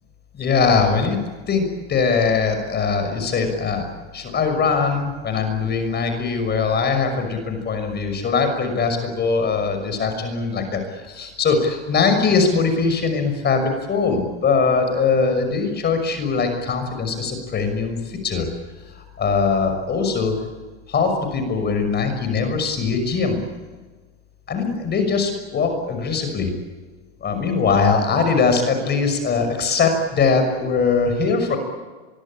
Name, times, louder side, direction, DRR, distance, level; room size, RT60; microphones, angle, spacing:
voice 1, 0.3-1.2 1.5-3.9 4.1-10.8 11.1-18.5 18.8-20.4 20.9-23.4 24.5-26.5 27.2-31.6, left 5 dB, 30° left, 6 dB, 6.0 m, -21 dB
24.0 x 22.5 x 8.9 m, 1.3 s
hypercardioid pair, 95°, 32 cm